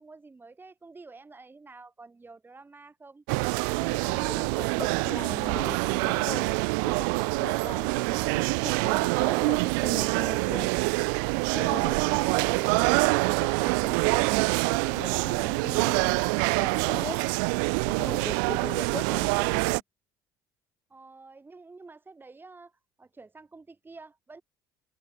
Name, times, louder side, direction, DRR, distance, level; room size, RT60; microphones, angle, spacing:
voice 1, 0.0-3.2 20.9-22.7 23.0-24.4, right 3 dB, 20° right, 2.0 m, -49 dB
sound 1, 3.3-19.8, right 35 dB, 65° right, 1.1 m, -26 dB
voice 2, 3.8-6.6 6.8-10.7 11.5-16.2 16.6-17.2 17.9-19.8, left 5 dB, 25° left, 4.9 m, -41 dB
open air
hypercardioid pair, 65°, 11 cm